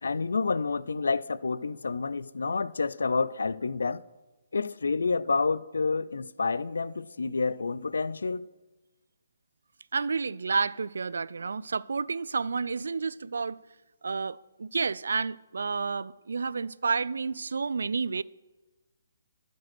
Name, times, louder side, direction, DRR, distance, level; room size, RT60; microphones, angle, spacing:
voice 1, 0.0-4.0 4.5-8.5, left 4 dB, 85° left, 0.4 m, -29 dB
voice 2, 9.9-13.6 14.0-18.2, right 4 dB, 80° right, 0.3 m, -30 dB
12.0 x 5.2 x 5.9 m
hypercardioid pair, 160°, 0 cm